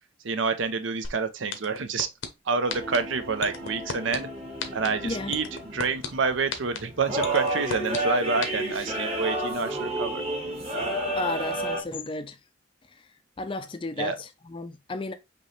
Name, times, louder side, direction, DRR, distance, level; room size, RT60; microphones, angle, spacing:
voice 1, 0.2-2.1 2.5-4.3 4.7-5.4 5.7-10.2 14.0-14.2, right 4 dB, 70° right, 0.6 m, -28 dB
sound 1, 1.0-1.1 1.5-2.3 2.7-3.0 3.4-4.2 4.6-4.9 5.3-6.1 6.5-6.8 7.2-8.0 8.4-8.5, left 6 dB, 80° left, 0.8 m, -31 dB
sound 2, 2.7-11.8, right 1 dB, 30° right, 1.3 m, -31 dB
voice 2, 5.0-5.4 11.2-12.4 13.0-13.1 13.4-15.1, left 2 dB, 25° left, 0.4 m, -33 dB
5.2 x 3.0 x 3.1 m
head